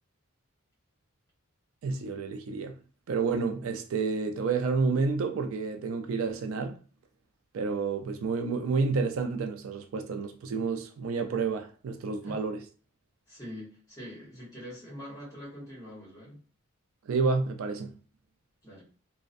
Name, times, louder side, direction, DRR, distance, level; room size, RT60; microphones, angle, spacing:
voice 1, 1.8-2.8 3.1-6.8 7.5-12.6 17.1-17.9, right 4 dB, 75° right, 0.3 m, -30 dB
voice 2, 13.3-16.4 18.6-18.8, equal, 15° left, 1.1 m, -44 dB
2.3 x 2.1 x 2.5 m
head